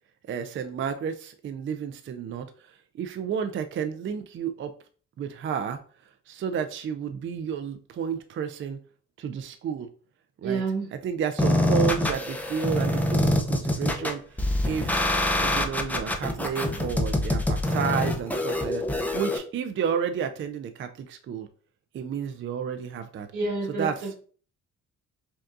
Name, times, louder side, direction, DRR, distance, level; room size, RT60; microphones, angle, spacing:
voice 1, 0.3-2.5 3.0-4.7 5.2-5.8 6.3-8.8 9.2-9.9 10.4-10.6 11.0-14.2 14.7-15.1 15.4-21.5 21.9-23.3 23.8-24.1, right 7 dB, 40° right, 8 dB, 0.4 m, -31 dB
voice 2, 10.4-10.9 23.3-24.1, right 4 dB, 85° right, 0 dB, 1.6 m, -28 dB
sound 1, 11.4-19.4, left 1 dB, 5° left, 0.6 m, -25 dB
5.2 x 2.3 x 2.6 m, 0.43 s
cardioid pair, 90°, 30 cm